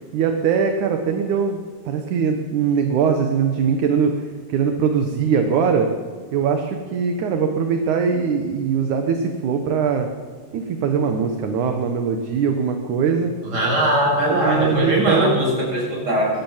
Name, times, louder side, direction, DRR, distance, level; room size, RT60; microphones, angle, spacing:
voice 1, 0.0-1.6 1.9-5.9 6.3-10.1 10.5-13.3 14.3-15.4, right 6 dB, 65° right, 5 dB, 2.5 m, -21 dB
voice 2, 13.5-16.3, right 1 dB, 25° right, -3 dB, 8.2 m, -20 dB
21.5 x 16.5 x 7.4 m, 1.5 s
omnidirectional pair, 4.2 m